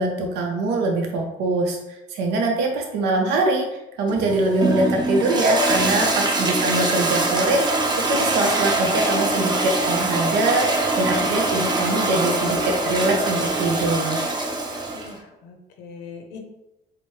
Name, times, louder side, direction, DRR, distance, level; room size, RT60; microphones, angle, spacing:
voice 1, 0.0-3.6 4.0-14.2, right 2 dB, 90° right, 1 dB, 0.6 m, -23 dB
Toilet flush, 4.1-15.1, right 2 dB, 25° right, 0.7 m, -23 dB
voice 2, 14.9-16.4, left 5 dB, 90° left, 3 dB, 0.6 m, -41 dB
4.4 x 2.1 x 3.0 m, 0.93 s
cardioid pair, 110°, 17 cm